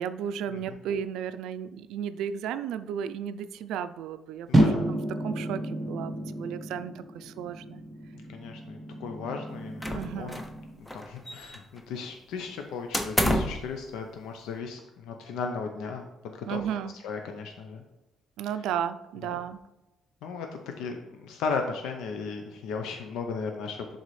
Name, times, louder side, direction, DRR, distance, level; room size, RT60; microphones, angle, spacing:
voice 1, 0.0-7.8 9.9-10.4 16.5-16.9 18.4-19.6, right 8 dB, 85° right, 12 dB, 0.4 m, -34 dB
voice 2, 4.5-4.9 8.3-10.4 10.8-16.6 17.0-17.8 20.2-23.9, left 5 dB, 85° left, 4 dB, 0.7 m, -36 dB
sound 1, 4.5-10.8, right 1 dB, 15° right, 1.1 m, -30 dB
sound 2, 9.8-10.6 10.9-11.8 12.9-13.7, equal, 5° left, 0.5 m, -29 dB
11.0 x 3.9 x 3.2 m, 1.0 s
cardioid pair, 175°, 0 cm